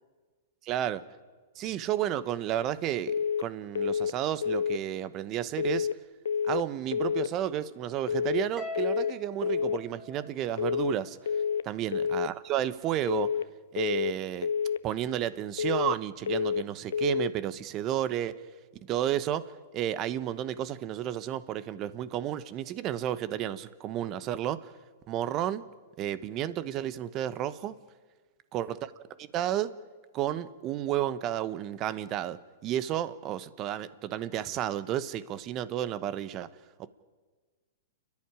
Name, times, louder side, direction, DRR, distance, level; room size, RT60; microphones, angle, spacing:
voice 1, 0.6-1.0 1.6-5.9 6.5-11.2 11.6-13.4 13.7-14.5 14.8-18.5 18.9-24.7 25.1-25.6 26.0-27.8 28.5-28.8 29.2-29.7 30.1-36.5, right 11 dB, 35° right, 15 dB, 1.0 m, -32 dB
sound 1, 3.1-3.5 3.8-4.2 4.4-4.8 5.6-6.0 6.3-6.7 6.9-7.3 8.1-8.5 8.8-9.2 9.4-9.8 10.6-11.0 11.3-11.7 11.9-12.3 13.1-13.5 13.8-14.2 14.4-14.8 15.6-16.0 16.3-16.7 16.9-17.3, left 7 dB, 80° left, 0.6 m, -28 dB
Harp, 8.6-11.0, left 2 dB, 15° right, 2.7 m, -42 dB
30.0 x 11.0 x 9.8 m, 1.4 s
hypercardioid pair, 130°, 0 cm